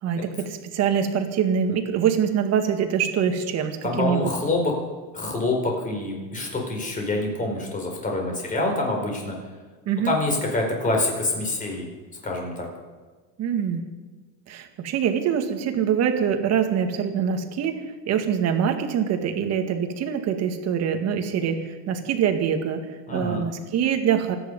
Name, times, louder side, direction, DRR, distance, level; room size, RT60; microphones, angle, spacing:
voice 1, 0.0-4.3 9.9-10.1 13.4-13.8 14.5-17.7 18.1-22.8 23.1-24.4, right 8 dB, 40° right, 6 dB, 2.1 m, -24 dB
voice 2, 3.8-4.7 5.1-9.3 10.0-11.9 12.2-12.7 23.1-23.5, left 2 dB, 20° left, 1 dB, 4.8 m, -26 dB
26.5 x 10.0 x 5.4 m, 1.4 s
cardioid pair, 145°, 38 cm